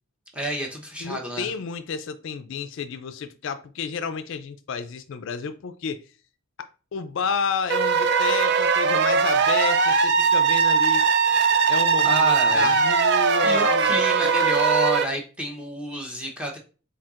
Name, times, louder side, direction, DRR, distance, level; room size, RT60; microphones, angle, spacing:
voice 1, 0.3-1.5 12.0-12.8 13.4-16.6, right 1 dB, 5° right, 0.8 m, -29 dB
voice 2, 1.0-6.0 6.6-11.0 11.7-13.9 14.2-14.3, left 6 dB, 60° left, 0.3 m, -31 dB
sound 1, 7.7-15.1, right 5 dB, 50° right, 0.4 m, -20 dB
4.3 x 3.9 x 2.4 m
head